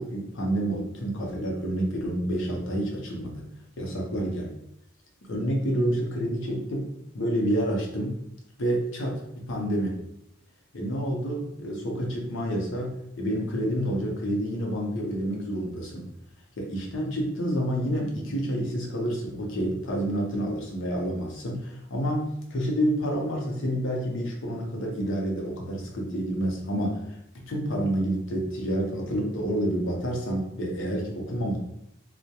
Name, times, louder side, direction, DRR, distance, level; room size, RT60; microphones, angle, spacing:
voice 1, 0.0-3.5 3.8-4.5 5.2-8.2 8.6-10.0 10.7-16.1 16.6-31.6, equal, 60° left, 0 dB, 0.6 m, -29 dB
2.2 x 2.1 x 2.8 m, 0.78 s
head